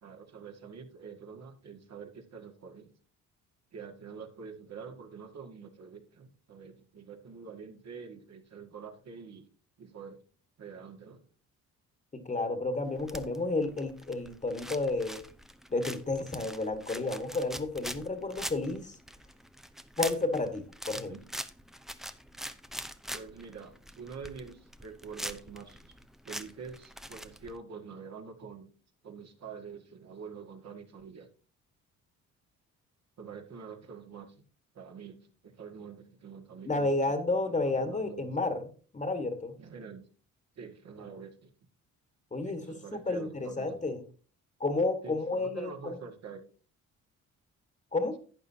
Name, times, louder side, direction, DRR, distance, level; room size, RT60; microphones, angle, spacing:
voice 1, 0.0-2.9 3.7-9.5 9.8-10.2 10.6-11.2 20.9-21.2 23.1-26.0 26.2-28.7 29.0-31.3 33.2-34.4 34.7-37.1 37.5-38.3 39.6-40.0 40.6-41.5 42.4-43.7 45.0-46.4, right 6 dB, 60° right, 4 dB, 1.9 m, -46 dB
voice 2, 12.1-15.2 15.7-19.0 20.0-21.1 36.6-38.7 38.9-39.5 42.3-44.0 44.6-46.0 47.9-48.2, left 2 dB, 25° left, 9 dB, 1.6 m, -31 dB
sound 1, 12.9-27.5, equal, ahead, 0.7 m, -43 dB
11.5 x 8.5 x 2.8 m, 0.38 s
cardioid pair, 90°, 30 cm